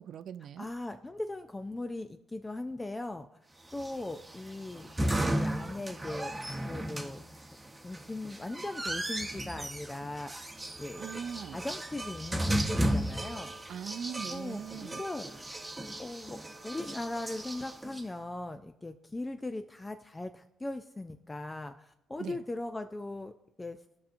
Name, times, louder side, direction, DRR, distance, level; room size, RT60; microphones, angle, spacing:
voice 1, 0.0-0.7 11.0-11.6 13.7-15.0 22.2-22.4, right 8 dB, 65° right, 0.3 m, -40 dB
voice 2, 0.6-3.3 3.7-4.9 5.3-6.3 6.7-7.2 7.8-10.5 10.8-11.2 11.5-13.5 14.3-15.5 16.0-23.3 23.6-23.8, left 2 dB, 20° left, 0.4 m, -39 dB
sound 1, 3.7-18.0, right 1 dB, 15° right, 0.9 m, -35 dB
16.0 x 5.6 x 2.6 m
cardioid pair, 90°, 0 cm